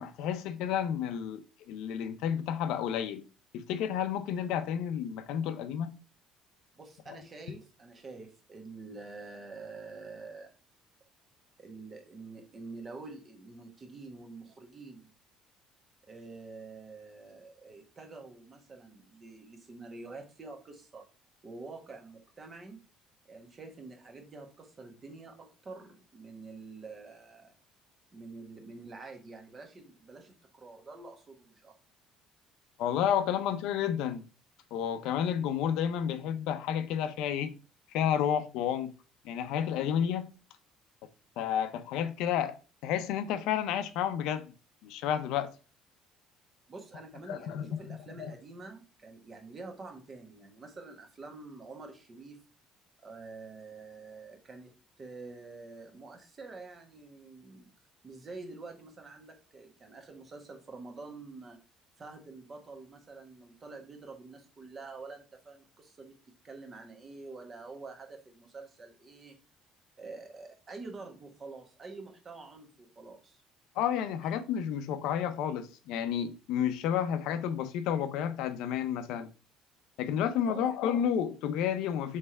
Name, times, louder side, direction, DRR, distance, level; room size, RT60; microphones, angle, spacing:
voice 1, 0.0-3.2 3.5-5.9 32.8-34.2 34.7-37.5 37.9-38.9 39.2-40.3 41.4-42.6 42.8-44.5 44.8-45.5 47.3-47.8 48.2-48.3 73.8-79.3 80.0-82.2, left 9 dB, 80° left, 0.5 m, -31 dB
voice 2, 6.8-10.5 11.6-15.1 16.1-21.0 21.4-22.8 23.3-27.6 28.1-31.7 46.7-52.4 53.0-57.7 58.0-61.6 62.0-66.1 66.4-69.4 70.0-73.4 74.2-74.3 80.4-80.7, right 3 dB, 35° right, 1.3 m, -47 dB
3.4 x 3.2 x 4.3 m
supercardioid pair, 95°, 0 cm